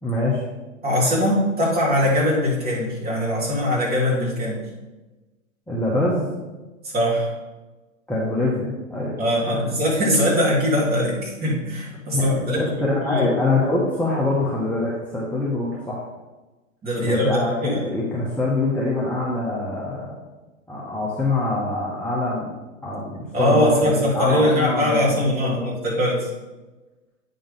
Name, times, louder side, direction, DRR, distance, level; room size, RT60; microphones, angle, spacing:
voice 1, 0.0-0.4 5.7-6.3 8.1-9.2 12.1-16.1 17.1-20.2 20.7-22.5 22.8-25.6, left 2 dB, 5° left, -7 dB, 1.1 m, -24 dB
voice 2, 0.8-4.6 6.9-7.3 9.2-13.3 16.8-17.8 23.3-26.3, left 1 dB, 25° right, -5 dB, 2.9 m, -21 dB
8.8 x 4.0 x 5.3 m, 1.1 s
hypercardioid pair, 105°, 40 cm